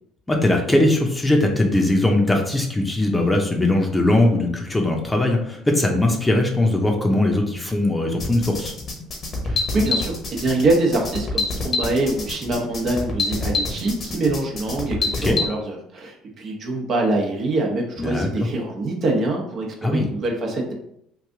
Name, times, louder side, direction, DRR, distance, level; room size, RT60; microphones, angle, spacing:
voice 1, 0.3-8.7 15.2-15.4 18.0-18.3 19.8-20.1, left 1 dB, 15° left, 2 dB, 0.8 m, -20 dB
sound 1, 8.2-15.5, left 3 dB, 45° left, 1.1 m, -26 dB
voice 2, 9.4-20.7, right 2 dB, 50° right, 0 dB, 0.9 m, -24 dB
3.2 x 2.5 x 3.7 m, 0.73 s
hypercardioid pair, 65°, 0 cm